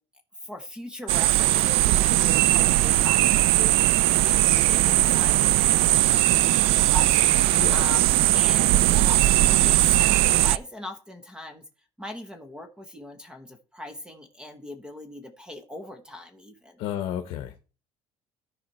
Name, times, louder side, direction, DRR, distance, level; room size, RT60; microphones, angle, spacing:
voice 1, 0.4-5.9 6.2-11.6 12.0-16.8, left 1 dB, 10° right, 8 dB, 1.1 m, -40 dB
sound 1, 1.1-10.6, right 16 dB, 65° right, 0.4 m, -19 dB
voice 2, 7.5-7.8 16.8-17.6, left 10 dB, 60° left, 8 dB, 0.9 m, -32 dB
13.5 x 4.9 x 4.3 m, 0.35 s
cardioid pair, 150°, 10 cm